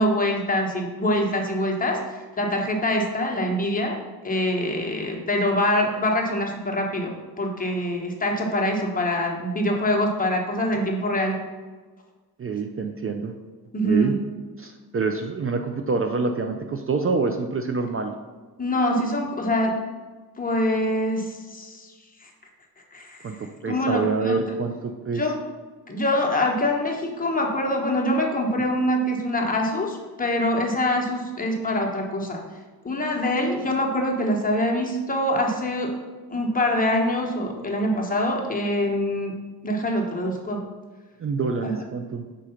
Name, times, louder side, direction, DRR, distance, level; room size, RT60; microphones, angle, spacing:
voice 1, 0.0-2.0 2.4-11.4 13.7-14.2 18.6-19.8 20.4-21.9 22.2-22.3 22.9-23.3 23.7-24.4 25.2-25.4 25.9-32.4 32.8-35.9 36.3-39.3 39.6-40.6 41.6-41.8, left 1 dB, 20° left, 0 dB, 1.0 m, -24 dB
voice 2, 12.4-13.3 13.8-14.1 14.6-18.1 23.2-25.3 41.2-42.2, right 4 dB, 35° right, 5 dB, 0.4 m, -26 dB
4.9 x 3.8 x 5.6 m, 1.4 s
wide cardioid pair, 130°, 39 cm